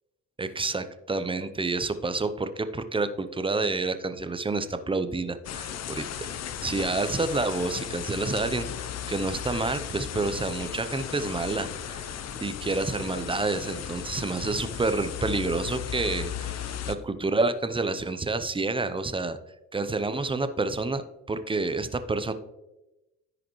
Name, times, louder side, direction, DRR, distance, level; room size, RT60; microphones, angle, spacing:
voice 1, 0.4-6.3 6.6-12.0 12.4-19.4 19.7-22.3, right 3 dB, 15° right, 10 dB, 0.6 m, -29 dB
sound 1, 5.4-17.0, left 9 dB, 45° left, 0.6 m, -36 dB
13.5 x 4.9 x 3.1 m, 1.0 s
supercardioid pair, 75°, 35 cm